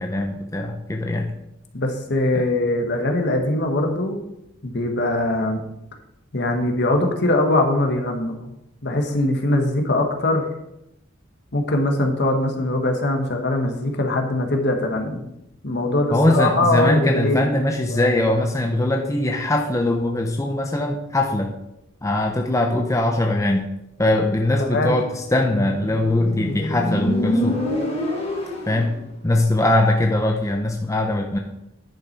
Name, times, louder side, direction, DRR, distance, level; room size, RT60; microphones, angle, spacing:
voice 1, 0.0-1.3 2.3-2.4 16.1-21.5 22.0-23.7 24.0-27.6 28.7-28.9 29.2-31.4, left 1 dB, 15° left, 2 dB, 0.6 m, -21 dB
voice 2, 1.7-4.2 4.6-5.6 6.3-8.5 8.8-10.5 11.5-15.2 15.6-17.5 17.9-18.1 24.6-24.9, left 1 dB, 55° left, 3 dB, 1.4 m, -22 dB
Motorcycle, 25.6-29.0, left 1 dB, 30° left, 1.5 m, -25 dB
10.5 x 5.8 x 4.5 m, 0.86 s
head